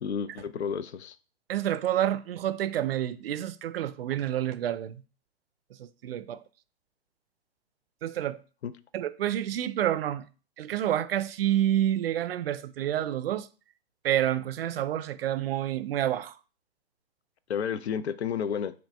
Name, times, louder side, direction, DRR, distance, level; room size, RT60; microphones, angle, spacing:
voice 1, 0.0-1.2 8.6-8.7 17.5-18.7, left 7 dB, 75° left, 0.5 m, -31 dB
voice 2, 1.5-5.0 5.8-6.4 8.0-8.4 8.9-10.2 10.6-13.5 14.0-16.3, right 11 dB, 60° right, 0.5 m, -28 dB
6.0 x 2.5 x 3.4 m
hypercardioid pair, 130°, 33 cm